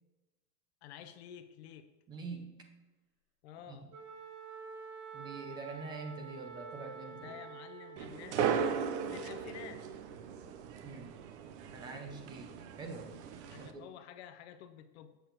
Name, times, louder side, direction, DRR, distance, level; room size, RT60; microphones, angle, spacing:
voice 1, 0.8-1.9 3.4-3.9 7.1-9.8 13.5-15.1, left 9 dB, 45° left, 9 dB, 0.6 m, -50 dB
voice 2, 2.1-2.5 3.7-3.8 5.1-7.4 10.8-11.1 11.7-12.5 12.8-13.1 13.6-13.8, right 3 dB, 10° right, 4 dB, 0.5 m, -44 dB
Wind instrument woodwind instrument, 3.9-8.3, right 6 dB, 85° right, 2.6 m, -48 dB
sound 1, 8.0-13.7, right 7 dB, 45° right, 0.7 m, -37 dB
8.0 x 6.6 x 3.9 m, 1.1 s
supercardioid pair, 160°, 47 cm